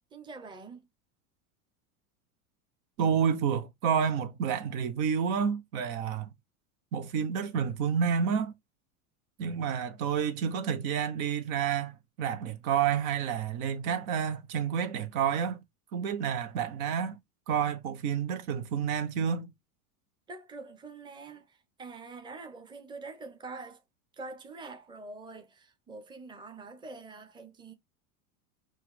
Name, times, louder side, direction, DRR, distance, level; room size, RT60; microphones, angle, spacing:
voice 1, 0.1-0.9 20.3-23.8 24.1-27.7, right 3 dB, 10° right, 0.8 m, -45 dB
voice 2, 3.0-6.3 6.9-8.5 9.4-15.6 15.9-17.2 17.5-19.5, right 7 dB, 65° right, 1.1 m, -29 dB
4.6 x 2.5 x 4.7 m
hypercardioid pair, 100°, 44 cm